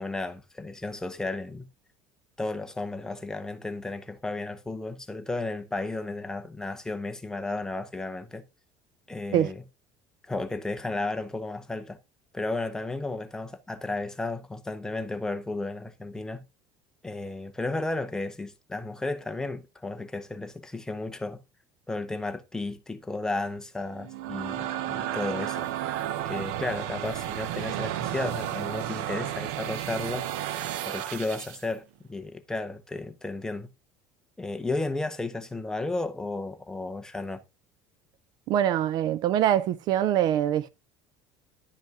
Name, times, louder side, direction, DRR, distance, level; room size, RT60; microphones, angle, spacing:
voice 1, 0.0-1.7 2.4-8.4 9.1-9.6 10.2-12.0 12.3-16.4 17.0-21.4 21.9-25.7 26.2-30.3 30.9-33.7 34.4-37.4, left 2 dB, 5° left, 0.7 m, -33 dB
sound 1, 23.9-31.7, right 12 dB, 80° right, 0.7 m, -32 dB
voice 2, 38.5-40.7, right 11 dB, 45° right, 0.3 m, -24 dB
10.5 x 5.4 x 3.5 m
cardioid pair, 165°, 10 cm